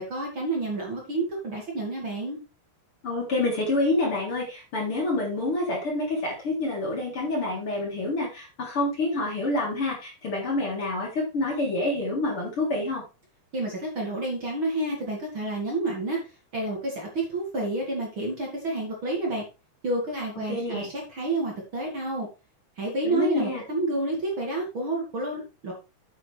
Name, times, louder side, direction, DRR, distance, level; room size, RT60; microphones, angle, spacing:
voice 1, 0.0-2.4 13.5-16.2 16.5-19.4 19.8-22.3 22.8-25.7, right 2 dB, 40° right, -1 dB, 2.8 m, -29 dB
voice 2, 3.0-13.0 20.5-20.9 23.0-23.6, left 2 dB, 40° left, -2 dB, 4.2 m, -27 dB
8.8 x 8.4 x 3.4 m, 0.29 s
omnidirectional pair, 3.8 m